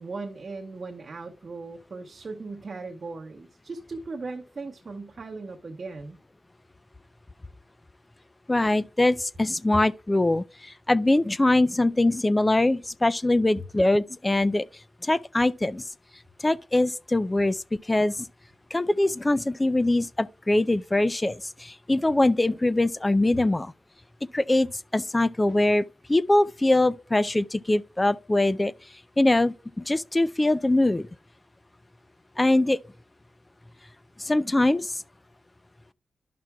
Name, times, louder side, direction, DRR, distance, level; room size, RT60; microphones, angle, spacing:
voice 1, 0.0-6.2 13.6-13.7 23.3-23.4 25.5-25.6, right 3 dB, 50° right, 0.9 m, -38 dB
voice 2, 8.5-14.6 15.0-15.8 16.4-17.6 17.9-18.3 18.7-23.7 24.3-25.8 26.1-28.7 29.2-31.1 32.4-32.8 34.2-34.9, left 2 dB, 20° left, 0.3 m, -23 dB
11.0 x 5.9 x 2.2 m
cardioid pair, 70°, 0 cm